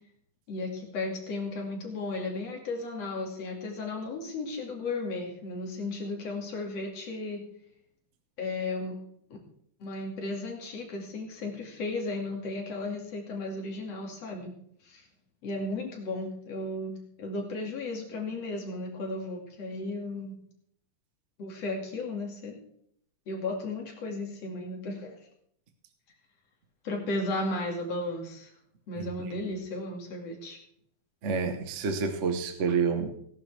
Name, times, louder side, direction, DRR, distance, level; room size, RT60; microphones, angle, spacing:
voice 1, 0.5-7.4 8.4-9.0 9.8-14.5 14.8-15.0 15.4-20.4 21.4-22.6 23.3-25.2 26.8-28.5 28.9-30.6, left 2 dB, 55° left, 1 dB, 3.3 m, -34 dB
voice 2, 31.2-33.1, right 5 dB, 65° right, 6 dB, 0.7 m, -28 dB
17.5 x 11.0 x 3.5 m, 0.69 s
omnidirectional pair, 3.5 m